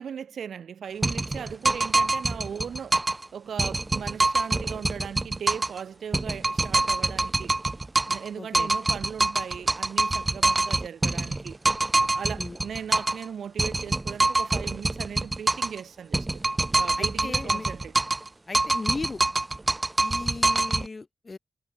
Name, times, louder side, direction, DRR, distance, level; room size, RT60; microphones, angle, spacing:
voice 1, 0.0-3.0 3.3-7.6 8.1-11.6 12.1-16.4 16.8-17.9, right 7 dB, 85° right, 2.2 m, -38 dB
sound 1, 1.0-3.2 3.6-5.8 6.1-8.3 8.5-13.2 13.6-15.8 16.1-18.3 18.5-20.9, right 2 dB, 25° right, 0.6 m, -25 dB
voice 2, 8.3-8.7 12.4-12.6 17.0-17.7 18.5-19.2 20.0-21.4, left 3 dB, 40° left, 3.0 m, -37 dB
cardioid pair, 70°, 0 cm